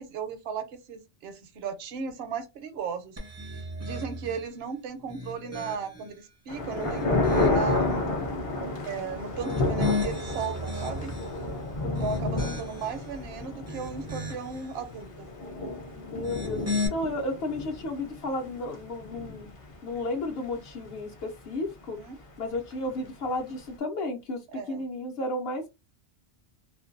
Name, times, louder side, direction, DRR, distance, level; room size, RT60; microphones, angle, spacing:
voice 1, 0.0-3.2 3.8-8.1 8.8-11.1 11.9-15.3 21.9-22.2 24.5-24.8, right 6 dB, 70° right, 0.8 m, -36 dB
sound 1, 3.2-4.5 5.0-6.1 6.6-7.7 9.2-11.4 11.9-13.0 13.5-14.6 16.1-16.9, left 3 dB, 25° right, 0.4 m, -35 dB
sound 2, 6.5-20.1 20.4-20.5 20.7-21.1 21.7-21.8 22.7-22.8, left 2 dB, 40° left, 0.5 m, -31 dB
voice 2, 11.8-12.6 15.9-16.6 16.9-19.5 19.8-22.0 22.4-25.7, left 2 dB, 65° left, 0.8 m, -33 dB
2.5 x 2.2 x 2.5 m
omnidirectional pair, 1.2 m